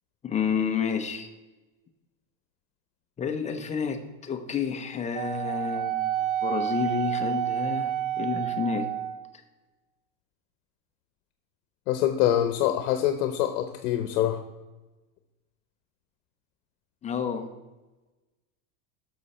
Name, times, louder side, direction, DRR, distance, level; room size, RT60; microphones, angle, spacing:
voice 1, 0.2-1.3 3.2-6.1 6.4-8.9 17.0-17.5, left 6 dB, 15° left, 6 dB, 0.5 m, -30 dB
Wind instrument woodwind instrument, 5.1-9.3, right 11 dB, 60° right, 1.2 m, -29 dB
voice 2, 11.9-14.4, left 11 dB, 65° left, 8 dB, 0.9 m, -25 dB
12.0 x 6.7 x 4.2 m, 1.1 s
supercardioid pair, 145°, 49 cm